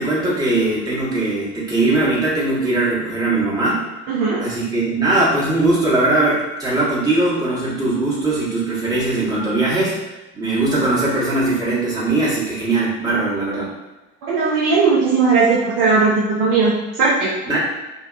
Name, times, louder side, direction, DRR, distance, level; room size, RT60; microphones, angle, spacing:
voice 1, 0.0-3.9 4.4-9.9 10.3-13.7 17.5-17.6, right 2 dB, 10° right, -8 dB, 1.0 m, -20 dB
voice 2, 4.1-4.5 14.2-17.3, right 4 dB, 50° right, -5 dB, 0.5 m, -17 dB
2.7 x 2.2 x 2.4 m, 1.1 s
figure-of-eight pair, 65°, 37 cm